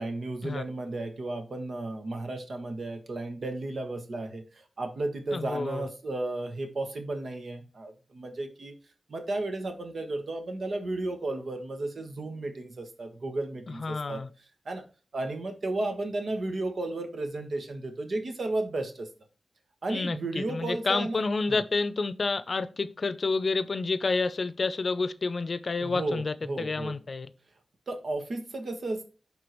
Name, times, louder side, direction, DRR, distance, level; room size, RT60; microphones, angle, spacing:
voice 1, 0.0-8.7 9.1-14.2 14.6-14.8 15.1-19.1 19.8-21.2 21.5-21.6 25.8-27.0 27.9-29.0, right 2 dB, 70° right, 1.4 m, -33 dB
voice 2, 5.3-5.8 13.8-14.3 19.9-27.3, left 3 dB, 60° left, 0.5 m, -29 dB
11.0 x 3.7 x 3.1 m
cardioid pair, 50°, 0 cm